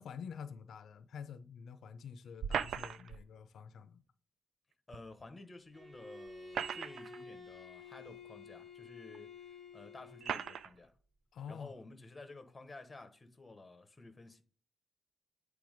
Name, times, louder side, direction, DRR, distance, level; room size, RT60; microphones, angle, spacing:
voice 1, 0.0-4.0 11.3-11.7, left 7 dB, 80° left, 0.5 m, -47 dB
sound 1, 2.4-3.2 4.9-5.0 6.3-7.2 8.1-8.2 9.1-9.2 10.2-10.7, right 7 dB, 80° right, 0.4 m, -38 dB
voice 2, 4.9-9.4 9.7-10.9 11.5-14.4, left 2 dB, 15° left, 0.9 m, -52 dB
Bowed string instrument, 5.7-10.6, left 4 dB, 20° right, 3.5 m, -52 dB
8.6 x 3.4 x 4.9 m
wide cardioid pair, 170°, 0 cm